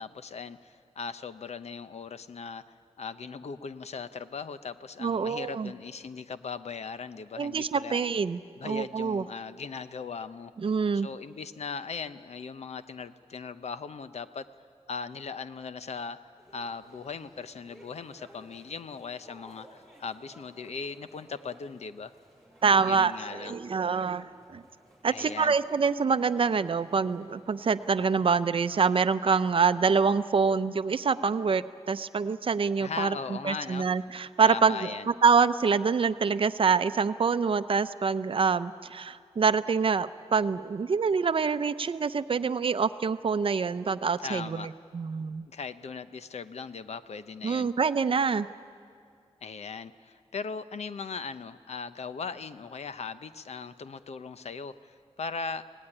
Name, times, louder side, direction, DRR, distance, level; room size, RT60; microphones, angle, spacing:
voice 1, 0.0-8.0 8.6-10.5 10.9-14.5 14.9-16.2 16.5-22.1 22.8-23.6 25.1-25.5 32.8-33.9 34.5-35.1 44.2-44.7 45.5-47.7 49.4-55.6, left 5 dB, 75° left, 12 dB, 0.8 m, -39 dB
voice 2, 5.0-5.7 7.4-9.2 10.6-11.1 22.6-24.6 25.0-45.5 47.4-48.5, right 5 dB, 55° right, 12 dB, 0.7 m, -26 dB
sound 1, 16.4-28.4, right 1 dB, 5° left, 7.7 m, -57 dB
25.0 x 18.0 x 9.9 m, 2.3 s
wide cardioid pair, 135°, 11 cm